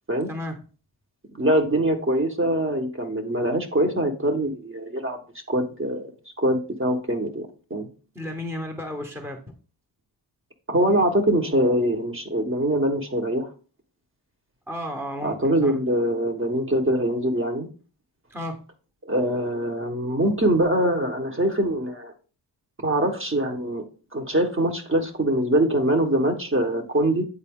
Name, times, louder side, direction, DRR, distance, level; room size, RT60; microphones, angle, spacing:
voice 1, 0.3-0.6 8.1-9.5 14.7-15.7 18.3-18.6, left 1 dB, 5° right, 3 dB, 1.1 m, -33 dB
voice 2, 1.3-5.2 5.5-6.1 6.4-7.9 10.7-13.5 15.2-17.7 19.0-22.1 22.8-23.8 24.1-27.2, right 1 dB, 30° right, 3 dB, 1.2 m, -23 dB
8.3 x 4.0 x 3.6 m, 0.38 s
cardioid pair, 85°, 44 cm